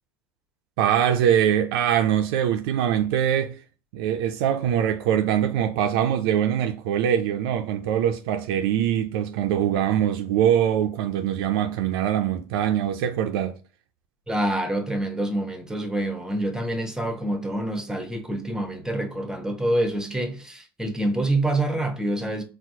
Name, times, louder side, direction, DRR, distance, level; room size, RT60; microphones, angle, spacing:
voice 1, 0.8-3.6 3.9-13.5, right 10 dB, 75° right, 0.4 m, -23 dB
voice 2, 14.3-22.4, right 1 dB, 5° right, 0.7 m, -26 dB
4.4 x 2.0 x 2.6 m
hypercardioid pair, 80°, 13 cm